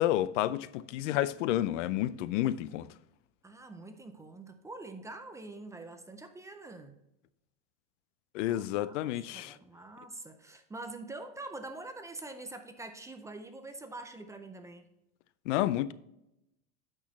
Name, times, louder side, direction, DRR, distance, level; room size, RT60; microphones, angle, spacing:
voice 1, 0.0-2.9 8.3-9.6 15.5-15.9, left 13 dB, 80° left, 0.6 m, -30 dB
voice 2, 3.4-7.0 8.4-9.0 9.3-14.9, right 2 dB, 10° right, 0.4 m, -45 dB
8.7 x 6.2 x 3.1 m
supercardioid pair, 135°, 36 cm